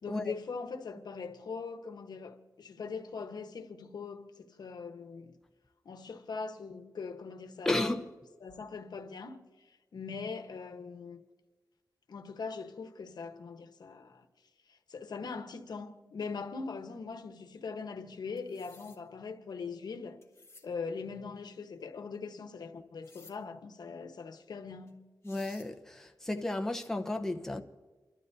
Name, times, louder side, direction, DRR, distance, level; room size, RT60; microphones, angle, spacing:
voice 1, 0.0-5.3 5.8-7.9 8.4-9.4 9.7-11.2 12.1-14.3 14.7-20.2 20.6-25.0, left 5 dB, 85° left, 1.0 m, -41 dB
voice 2, 7.6-8.1 25.2-27.6, left 2 dB, 5° left, 0.9 m, -33 dB
sound 1, 18.4-19.0 20.2-20.7 23.0-23.4 24.9-25.0 25.2-25.7, left 3 dB, 40° left, 1.8 m, -56 dB
29.5 x 12.5 x 2.7 m
wide cardioid pair, 120°, 7 cm